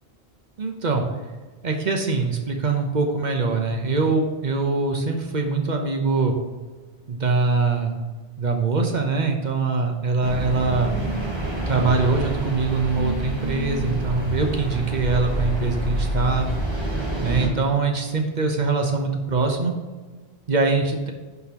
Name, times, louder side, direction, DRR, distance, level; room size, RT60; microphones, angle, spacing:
voice 1, 0.6-1.0 1.6-6.3 7.1-8.0 8.4-10.9 11.7-16.5 17.2-19.7 20.5-21.1, right 3 dB, 50° right, 3 dB, 0.8 m, -23 dB
sound 1, 10.2-17.5, right 1 dB, 25° right, 1.1 m, -27 dB
11.0 x 3.9 x 2.9 m, 1.3 s
omnidirectional pair, 1.1 m